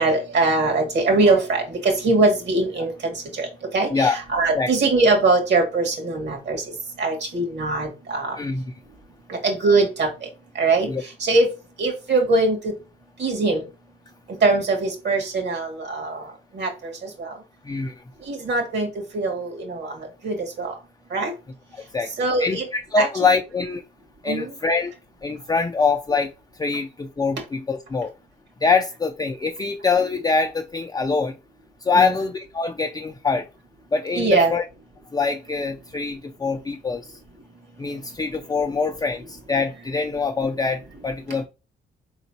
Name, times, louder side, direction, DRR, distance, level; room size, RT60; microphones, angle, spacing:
voice 1, 0.0-2.9 3.3-3.5 3.7-6.6 7.0-8.4 9.3-10.3 10.6-10.9 11.2-11.5 11.8-12.7 13.2-13.6 14.4-16.2 16.5-16.9 17.2-17.3 18.3-18.9 19.1-19.9 20.2-20.7 21.1-21.3 22.2-22.7 22.9-23.3 24.3-24.5 31.9-32.2 34.1-34.5, right 3 dB, 60° right, 2.2 m, -21 dB
voice 2, 21.8-22.1 22.4-23.8 24.2-24.9 25.2-26.3 26.6-28.1 28.6-31.3 31.8-33.5 33.9-34.6 35.1-37.1 37.8-41.5, left 4 dB, 20° left, 0.5 m, -24 dB
4.4 x 3.9 x 2.8 m
cardioid pair, 90°, 20 cm